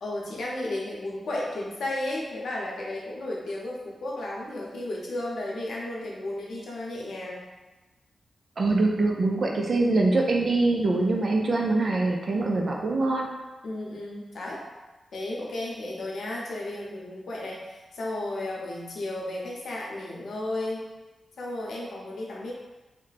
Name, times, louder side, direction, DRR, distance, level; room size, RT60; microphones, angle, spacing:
voice 1, 0.0-7.5 12.5-12.8 13.6-14.6 15.1-20.9 21.4-22.5, left 1 dB, 85° left, -3 dB, 0.7 m, -33 dB
voice 2, 8.6-13.3, right 2 dB, 50° right, 1 dB, 0.5 m, -24 dB
3.1 x 2.2 x 4.0 m, 1.1 s
wide cardioid pair, 115°, 0 cm